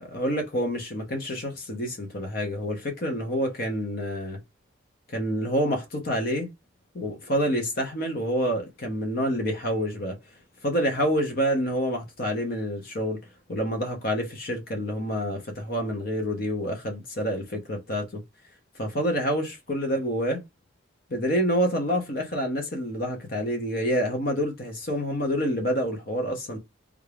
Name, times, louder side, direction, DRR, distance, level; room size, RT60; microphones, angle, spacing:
voice 1, 0.1-4.4 5.1-6.5 6.9-10.1 10.6-13.2 13.5-18.2 18.8-20.4 21.1-26.6, equal, 45° left, 0.8 m, -27 dB
3.5 x 2.4 x 3.3 m
head